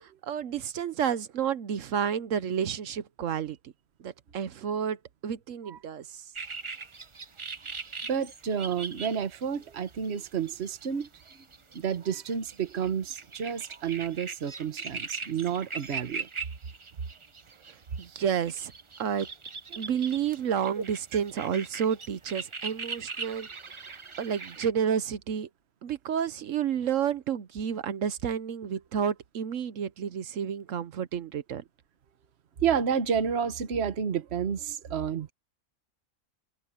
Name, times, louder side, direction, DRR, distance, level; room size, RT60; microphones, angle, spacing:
voice 1, 0.0-3.7 4.0-5.0 5.2-6.2 17.7-18.7 19.0-19.3 19.8-23.5 24.2-25.5 25.8-31.6, right 8 dB, 70° right, 1.1 m, -30 dB
sound 1, 6.3-24.7, right 4 dB, 30° right, 0.6 m, -41 dB
voice 2, 8.1-11.1 11.7-16.3 32.6-35.3, right 7 dB, 55° right, 1.3 m, -30 dB
omnidirectional pair, 1.4 m